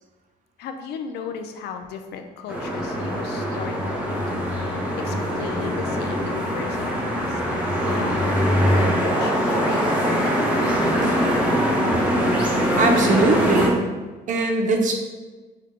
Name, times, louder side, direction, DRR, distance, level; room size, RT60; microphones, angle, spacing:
voice 1, 0.6-11.2, left 6 dB, 75° left, 6 dB, 0.5 m, -36 dB
sound 1, 2.5-13.7, equal, 5° right, 0.9 m, -22 dB
voice 2, 12.8-13.9 14.3-14.9, right 3 dB, 50° right, 3 dB, 0.8 m, -21 dB
6.1 x 2.3 x 3.6 m, 1.3 s
cardioid pair, 110°, 17 cm